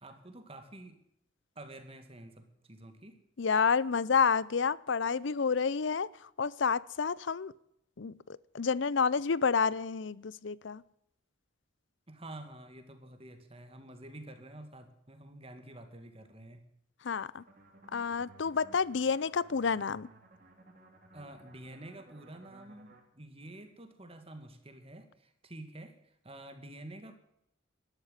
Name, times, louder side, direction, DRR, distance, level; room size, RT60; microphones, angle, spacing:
voice 1, 0.0-1.0 1.6-3.2 12.1-16.6 21.1-27.1, right 1 dB, 30° right, 2.1 m, -49 dB
voice 2, 3.4-6.1 6.4-7.5 8.0-8.1 8.5-10.8 17.0-17.4 17.9-20.1, left 5 dB, 60° left, 0.6 m, -29 dB
sound 1, 17.4-23.0, right 2 dB, 45° right, 3.3 m, -58 dB
12.5 x 11.5 x 8.1 m
head